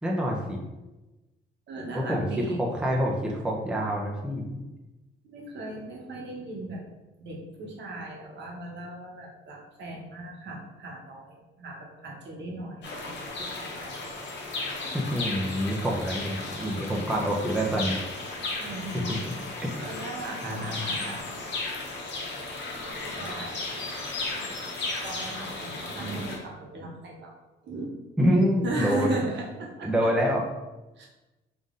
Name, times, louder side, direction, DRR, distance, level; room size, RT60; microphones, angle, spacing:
voice 1, 0.0-0.6 1.9-4.6 14.9-18.0 19.2-19.3 19.6-19.9 20.4-20.9 28.2-29.2 29.8-30.4, equal, 5° right, -2 dB, 0.6 m, -26 dB
voice 2, 1.7-2.6 5.2-6.8 7.2-14.0 18.6-19.4 19.8-21.5 22.8-23.6 25.0-27.3 27.6-27.9 28.6-29.9 31.0-31.1, right 2 dB, 65° right, -2 dB, 1.0 m, -37 dB
sound 1, 12.8-26.4, left 3 dB, 65° left, 0.9 m, -35 dB
3.7 x 2.6 x 3.7 m, 1.1 s
cardioid pair, 90°, 20 cm